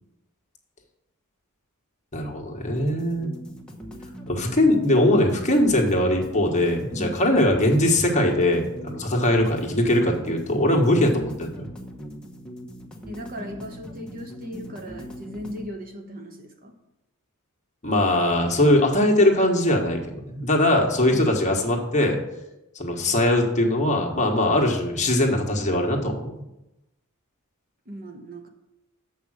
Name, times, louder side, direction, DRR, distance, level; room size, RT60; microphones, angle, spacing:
voice 1, 2.1-3.3 4.3-11.7 17.8-22.2 22.7-26.3, left 1 dB, 35° left, 1 dB, 1.3 m, -21 dB
sound 1, 2.8-15.7, equal, 5° left, 1.0 m, -41 dB
voice 2, 13.1-16.7 27.9-28.5, equal, 40° right, 5 dB, 0.9 m, -37 dB
7.3 x 5.3 x 6.4 m, 0.91 s
head